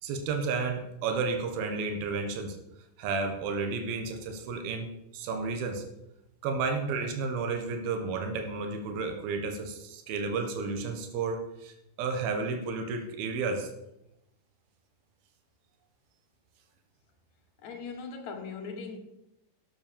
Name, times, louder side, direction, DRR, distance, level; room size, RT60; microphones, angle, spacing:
voice 1, 0.0-2.6 3.0-4.9 5.1-5.8 6.4-13.7, right 4 dB, 85° right, 3.3 m, -32 dB
voice 2, 17.6-19.0, left 5 dB, 60° left, 2.6 m, -39 dB
12.5 x 8.9 x 6.9 m
omnidirectional pair, 4.2 m